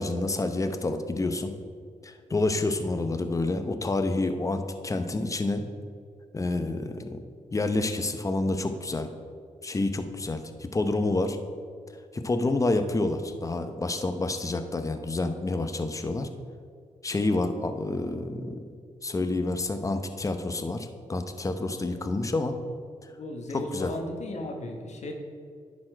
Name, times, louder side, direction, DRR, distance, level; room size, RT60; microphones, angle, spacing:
voice 1, 0.0-1.6 2.0-5.6 6.3-7.2 7.5-9.1 9.6-11.4 12.1-16.3 17.0-18.6 19.0-22.6 23.5-23.9, left 2 dB, 25° left, 8 dB, 0.7 m, -28 dB
voice 2, 23.1-25.1, left 1 dB, 60° left, 3 dB, 1.1 m, -36 dB
10.5 x 4.3 x 4.4 m, 2.1 s
cardioid pair, 65°, 13 cm